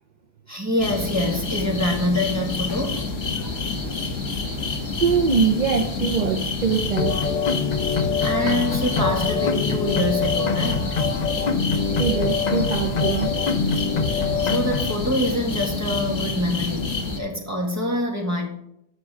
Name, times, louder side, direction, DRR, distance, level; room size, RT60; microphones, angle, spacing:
voice 1, 0.5-3.1 8.2-11.0 14.4-18.5, left 1 dB, 15° right, 1 dB, 1.6 m, -25 dB
sound 1, 0.8-17.2, left 4 dB, 90° left, 1.7 m, -28 dB
voice 2, 5.0-7.2 11.4-11.5 11.9-13.3, right 6 dB, 45° right, 4 dB, 0.6 m, -23 dB
sound 2, 7.0-15.0, left 5 dB, 45° left, 0.6 m, -24 dB
9.6 x 6.1 x 4.8 m, 0.79 s
omnidirectional pair, 1.3 m